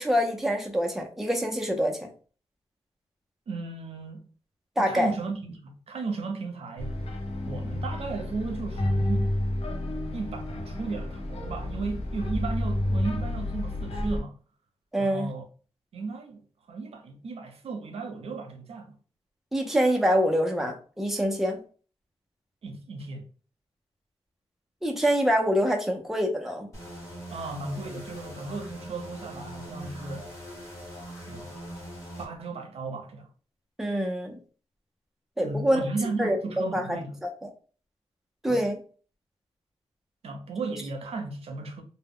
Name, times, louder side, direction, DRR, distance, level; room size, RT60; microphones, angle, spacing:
voice 1, 0.0-2.1 4.8-5.1 14.9-15.3 19.5-21.6 24.8-26.7 33.8-34.4 35.4-35.9 36.2-36.9 37.2-37.5 38.4-38.8, equal, 5° right, 0.5 m, -25 dB
voice 2, 3.5-4.3 4.8-6.9 7.5-9.3 10.1-14.4 15.0-15.4 15.9-16.4 16.7-19.0 22.6-23.2 27.3-30.3 31.3-31.5 32.2-33.3 35.4-37.2 38.5-38.7 40.2-41.8, right 3 dB, 70° right, 0.6 m, -35 dB
sound 1, 6.8-14.2, left 1 dB, 65° left, 0.5 m, -30 dB
sound 2, 26.7-32.3, equal, 25° left, 1.0 m, -41 dB
2.1 x 2.0 x 3.5 m
wide cardioid pair, 130°, 11 cm